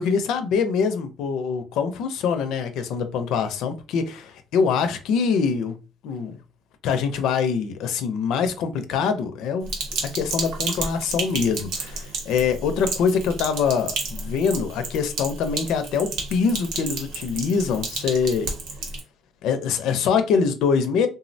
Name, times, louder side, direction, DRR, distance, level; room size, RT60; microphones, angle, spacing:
voice 1, 0.0-5.8 6.0-6.4 6.8-9.7 10.1-18.5 19.4-21.1, left 6 dB, 60° left, 0.4 m, -24 dB
Sink (filling or washing), 9.7-19.0, right 3 dB, 80° right, 0.9 m, -32 dB
3.6 x 2.0 x 2.6 m
cardioid pair, 180°, 0 cm